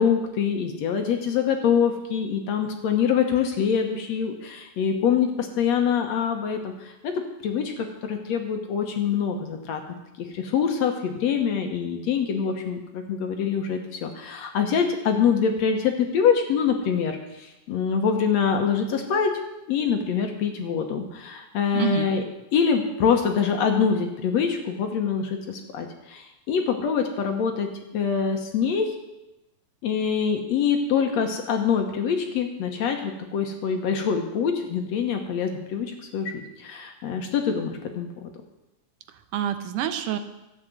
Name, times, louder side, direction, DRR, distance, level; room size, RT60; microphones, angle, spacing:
voice 1, 0.0-7.1 7.4-9.8 10.2-19.3 19.7-22.2 22.5-28.9 29.8-38.3, left 7 dB, 65° left, 4 dB, 2.1 m, -25 dB
voice 2, 21.7-22.1 39.1-40.2, right 10 dB, 80° right, 9 dB, 2.4 m, -27 dB
12.5 x 8.1 x 7.7 m, 0.95 s
omnidirectional pair, 3.7 m